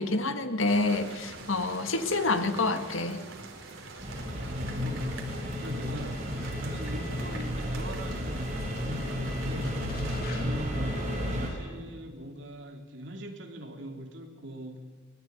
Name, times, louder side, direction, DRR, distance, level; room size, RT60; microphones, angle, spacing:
voice 1, 0.0-3.2, left 2 dB, 85° left, 8 dB, 1.8 m, -28 dB
sound 1, 0.6-10.2, right 3 dB, 85° right, 4.2 m, -45 dB
sound 2, 4.0-11.5, equal, 35° right, 5.5 m, -33 dB
voice 2, 4.4-6.2 6.6-9.8 10.4-14.8, right 1 dB, 65° right, 4 dB, 3.0 m, -42 dB
sound 3, 7.0-7.9 8.2-8.3 8.8-8.9 9.4-11.2 11.6-11.7 12.2-12.3, left 1 dB, 50° left, 4.0 m, -43 dB
23.5 x 18.5 x 9.4 m, 1.5 s
head